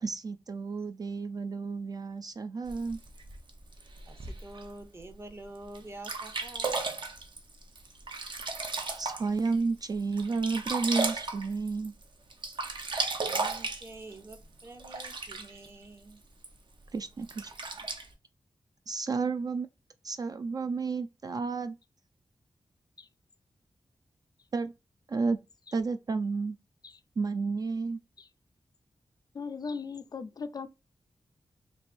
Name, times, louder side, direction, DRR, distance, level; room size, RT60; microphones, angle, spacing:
voice 1, 0.0-3.0 9.0-11.9 16.9-17.5 18.9-19.7 20.0-21.8 24.5-24.7 25.1-25.4 25.7-26.6 27.2-28.0, right 4 dB, 45° right, 0.3 m, -31 dB
Sink (filling or washing), 2.7-4.6 5.3-5.4 5.7-5.8 6.0-9.5 9.9-12.0 12.3-15.7 16.4-16.5 17.2-18.0, right 3 dB, 60° right, 0.8 m, -34 dB
voice 2, 4.1-6.8 13.2-16.2 17.7-17.9, right 2 dB, 25° right, 0.7 m, -47 dB
voice 3, 29.3-30.7, left 5 dB, 45° left, 0.3 m, -38 dB
3.2 x 2.6 x 4.2 m
wide cardioid pair, 75°, 9 cm